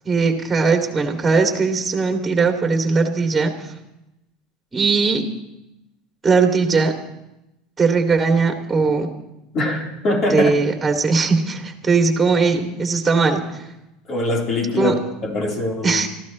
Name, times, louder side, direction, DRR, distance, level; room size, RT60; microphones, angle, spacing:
voice 1, 0.1-3.5 4.7-5.2 6.2-6.9 7.8-9.1 10.3-13.4 14.8-14.9 15.8-16.1, right 4 dB, 15° right, 2 dB, 2.6 m, -19 dB
voice 2, 9.5-10.5 14.1-14.9 15.2-16.0, left 2 dB, 40° left, 0 dB, 3.9 m, -22 dB
26.5 x 14.5 x 3.2 m, 0.89 s
supercardioid pair, 120°, 0 cm